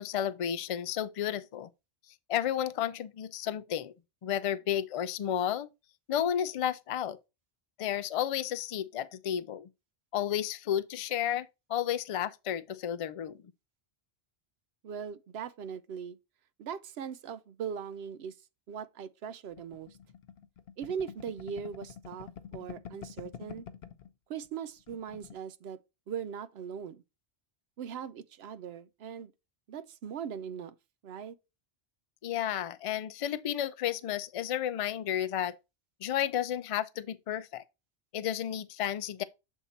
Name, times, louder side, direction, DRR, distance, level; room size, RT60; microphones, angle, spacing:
voice 1, 0.0-1.7 2.3-3.9 4.2-5.7 6.1-7.2 7.8-9.7 10.1-13.4 32.2-35.6 36.0-37.6 38.1-39.2, left 10 dB, 55° left, 0.4 m, -32 dB
voice 2, 14.8-16.2 16.6-18.4 18.7-20.0 20.8-23.7 24.3-25.8 26.1-27.0 27.8-29.3 29.7-30.8 31.0-31.4, right 7 dB, 80° right, 0.8 m, -40 dB
sound 1, 19.6-24.1 24.4-24.6 24.8-25.4, left 8 dB, 80° left, 0.9 m, -46 dB
7.1 x 3.6 x 4.1 m
omnidirectional pair, 1.0 m